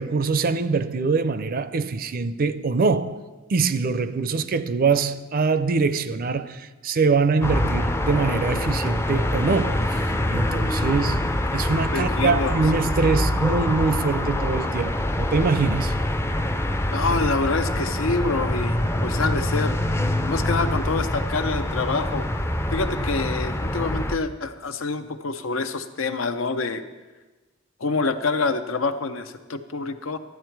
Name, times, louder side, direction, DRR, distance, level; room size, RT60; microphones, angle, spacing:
voice 1, 0.0-3.2 3.5-15.9, right 4 dB, 45° right, 0.4 m, -24 dB
sound 1, 7.4-24.2, left 1 dB, 10° left, 0.4 m, -25 dB
voice 2, 11.9-12.6 13.0-13.1 16.9-19.7 20.3-22.3 22.7-26.8 27.8-30.2, left 3 dB, 85° left, 0.7 m, -26 dB
13.0 x 9.1 x 4.6 m
head